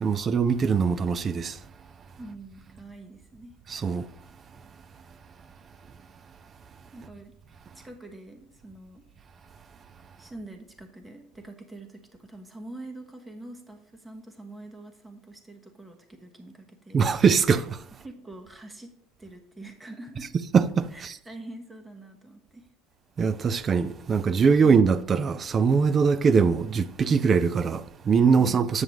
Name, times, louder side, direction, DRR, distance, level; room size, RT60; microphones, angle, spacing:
voice 1, 0.0-1.5 3.7-4.1 16.9-17.8 20.5-21.2 23.2-28.8, right 5 dB, 30° right, 0.3 m, -22 dB
voice 2, 2.2-3.6 6.9-7.4 7.7-9.0 10.2-17.0 18.0-20.3 20.9-22.7, right 2 dB, 10° right, 1.2 m, -44 dB
7.9 x 7.2 x 3.1 m
supercardioid pair, 105°, 0 cm